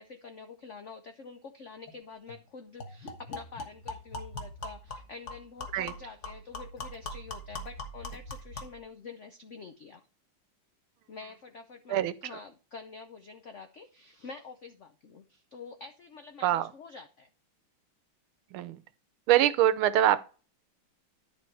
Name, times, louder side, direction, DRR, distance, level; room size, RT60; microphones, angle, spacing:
voice 1, 0.0-10.0 11.1-17.3, left 4 dB, 85° left, 0.6 m, -47 dB
sound 1, 1.9-2.0 2.3-2.4 2.8-8.8, left 2 dB, 40° left, 1.5 m, -41 dB
voice 2, 18.5-18.8 19.3-20.2, right 12 dB, 85° right, 1.6 m, -24 dB
10.5 x 4.9 x 4.5 m
omnidirectional pair, 2.3 m